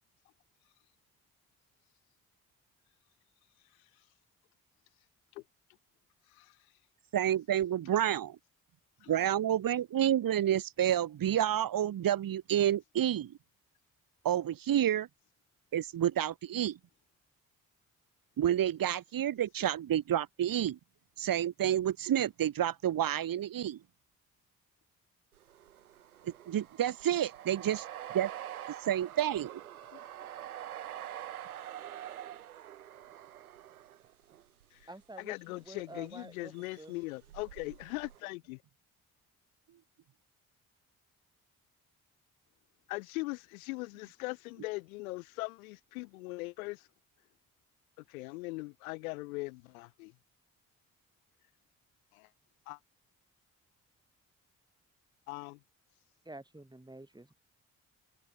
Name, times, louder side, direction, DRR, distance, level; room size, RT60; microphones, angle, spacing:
voice 1, 7.1-8.4 9.1-13.3 14.2-15.1 15.7-16.8 18.4-20.8 21.2-23.8 26.2-27.8 28.1-28.3 28.8-29.6, right 11 dB, 50° right, 2.2 m, -29 dB
voice 2, 9.0-9.3 29.9-30.0 34.7-34.9 35.2-38.6 42.9-46.9 48.0-50.1 52.1-52.3 52.7-52.8 55.3-55.6, left 24 dB, 75° left, 2.1 m, -40 dB
sound 1, 25.3-34.8 35.8-36.3 36.5-38.2, right 11 dB, 85° right, 3.6 m, -46 dB
voice 3, 34.9-36.9 56.2-57.3, right 2 dB, 10° right, 4.4 m, -49 dB
open air
figure-of-eight pair, 40°, 42 cm